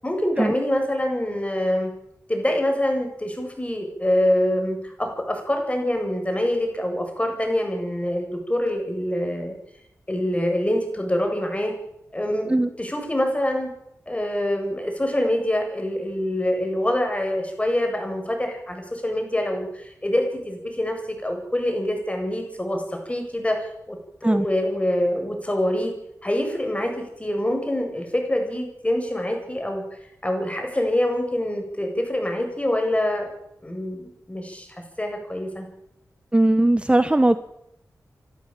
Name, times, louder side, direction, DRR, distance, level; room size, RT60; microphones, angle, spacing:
voice 1, 0.0-1.9 2.3-9.5 10.1-11.7 12.1-13.7 14.1-25.9 26.2-29.8 30.2-33.3 33.6-35.7, left 1 dB, 20° left, 3 dB, 7.8 m, -25 dB
voice 2, 36.3-37.4, right 1 dB, 15° right, 12 dB, 1.0 m, -18 dB
27.0 x 12.5 x 9.0 m, 0.80 s
cardioid pair, 55°, 6 cm